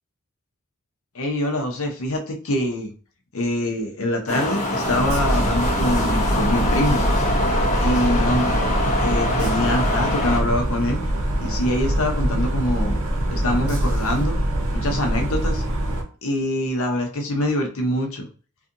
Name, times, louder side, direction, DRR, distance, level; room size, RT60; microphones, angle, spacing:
voice 1, 1.1-2.9 3.3-7.0 7.8-8.6 9.0-11.0 11.4-13.0 13.3-14.3 14.7-15.6 16.2-18.3, left 1 dB, 70° left, 3 dB, 0.7 m, -24 dB
sound 1, 4.3-10.4, left 1 dB, 35° left, 0.7 m, -24 dB
sound 2, 4.8-16.0, right 1 dB, 65° right, 0.7 m, -24 dB
2.6 x 2.5 x 2.5 m, 0.38 s
head